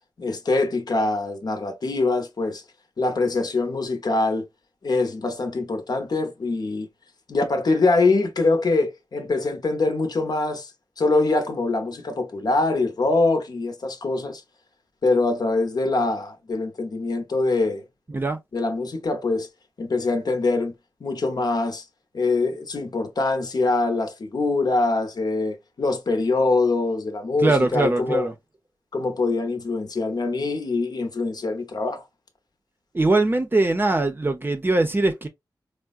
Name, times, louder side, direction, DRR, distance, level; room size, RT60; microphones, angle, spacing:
voice 1, 0.2-2.6 3.0-4.5 4.8-6.9 7.3-10.7 11.0-14.4 15.0-17.8 18.5-19.5 19.8-20.7 21.0-21.8 22.1-28.3 28.9-32.0, left 3 dB, 60° left, 0.8 m, -23 dB
voice 2, 18.1-18.4 27.4-28.3 32.9-35.3, right 2 dB, 25° right, 0.6 m, -21 dB
4.6 x 2.1 x 2.4 m
wide cardioid pair, 110°, 8 cm